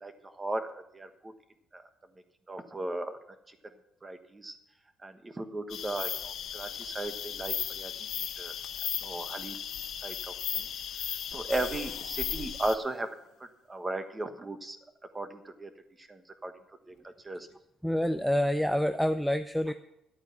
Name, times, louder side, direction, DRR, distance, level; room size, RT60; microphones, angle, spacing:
voice 1, 0.0-1.3 1.7-1.8 2.5-3.2 3.5-3.6 4.0-4.6 5.0-7.9 8.4-8.5 9.0-9.6 10.0-10.7 11.3-13.1 13.7-14.8 15.1-15.7 16.1-16.5 16.9-17.5, right 2 dB, 15° right, 8 dB, 1.2 m, -36 dB
sound 1, 5.7-12.8, left 9 dB, 60° left, 1.0 m, -36 dB
sound 2, 11.3-13.4, left 9 dB, 80° left, 1.4 m, -49 dB
voice 2, 17.8-19.7, equal, ahead, 8 dB, 0.4 m, -27 dB
12.0 x 8.7 x 5.8 m, 0.84 s
cardioid pair, 135°, 0 cm